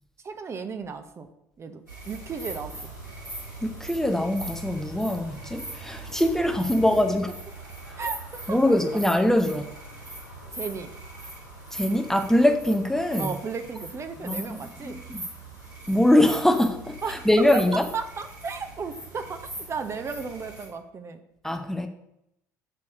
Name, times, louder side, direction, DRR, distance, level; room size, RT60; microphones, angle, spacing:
voice 1, 0.2-1.3 1.6-2.9 6.8-7.2 8.0-8.8 10.5-10.9 13.2-15.0 17.0-17.3 17.5-21.2, right 5 dB, 30° right, 8 dB, 0.7 m, -35 dB
sound 1, 1.9-20.7, right 1 dB, 90° right, 2.8 m, -40 dB
voice 2, 3.6-7.3 8.5-9.7 11.7-13.4 14.2-15.2 15.9-17.8 21.4-21.9, left 1 dB, 5° left, 6 dB, 0.7 m, -23 dB
6.4 x 4.1 x 6.4 m, 0.83 s
figure-of-eight pair, 60°, 10 cm